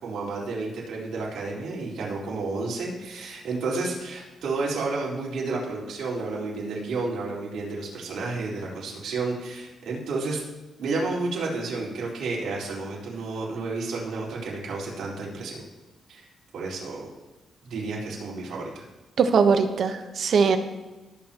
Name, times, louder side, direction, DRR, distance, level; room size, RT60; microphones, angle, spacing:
voice 1, 0.0-10.4 10.8-15.6 16.1-16.3 16.5-17.1 17.7-18.8, right 3 dB, 80° right, -5 dB, 4.2 m, -31 dB
voice 2, 19.2-20.6, right 5 dB, 60° right, 7 dB, 1.1 m, -21 dB
18.5 x 8.9 x 3.0 m, 1.1 s
cardioid pair, 105°, 0 cm